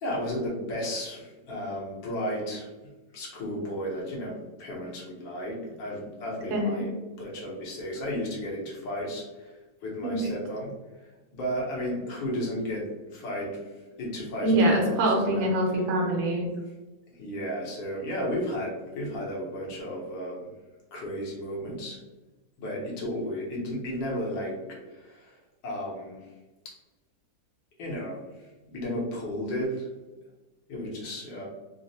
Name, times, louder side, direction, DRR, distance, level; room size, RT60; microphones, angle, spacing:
voice 1, 0.0-2.7 3.1-10.7 11.0-15.5 16.7-16.8 17.1-20.5 20.9-22.0 22.6-25.4 25.6-26.2 26.7-26.8 27.8-29.9 30.7-31.4, equal, 80° left, -3 dB, 1.6 m, -34 dB
voice 2, 6.5-6.9 10.0-10.2 14.4-16.5, right 1 dB, 80° right, -1 dB, 1.5 m, -24 dB
3.9 x 2.0 x 2.7 m, 1.1 s
omnidirectional pair, 2.0 m